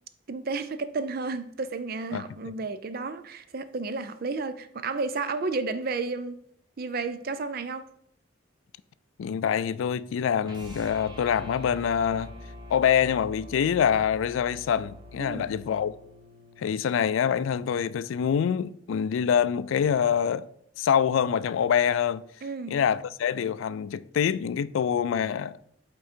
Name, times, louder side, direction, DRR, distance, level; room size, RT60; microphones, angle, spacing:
voice 1, 0.3-6.4 6.8-7.9 15.2-15.5 22.4-22.8, right 3 dB, 45° right, 0.4 m, -32 dB
voice 2, 9.2-12.3 12.7-16.0 16.6-20.5 20.8-22.2 22.7-25.6, left 8 dB, 75° left, 0.3 m, -25 dB
sound 1, 10.4-16.8, left 1 dB, 20° right, 0.9 m, -45 dB
8.4 x 3.7 x 4.4 m
head